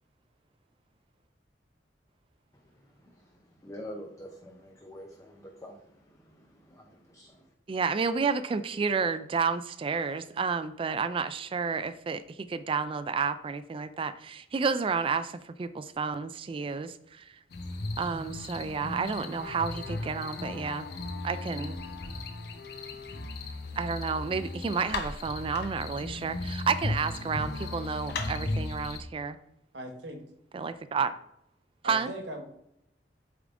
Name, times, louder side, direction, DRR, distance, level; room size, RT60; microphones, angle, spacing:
voice 1, 3.6-5.9 6.3-6.4 6.7-7.4, equal, 20° left, 1 dB, 0.6 m, -45 dB
voice 2, 7.7-17.2 18.0-20.9 21.2-21.8 23.8-29.4 30.5-31.1 31.8-32.1, right 5 dB, 30° right, 12 dB, 0.3 m, -31 dB
sound 1, 17.5-29.0, left 2 dB, 65° left, 0.8 m, -36 dB
voice 3, 29.7-30.2 31.8-32.4, right 1 dB, 75° right, 4 dB, 1.3 m, -39 dB
8.2 x 3.7 x 3.6 m, 0.80 s
head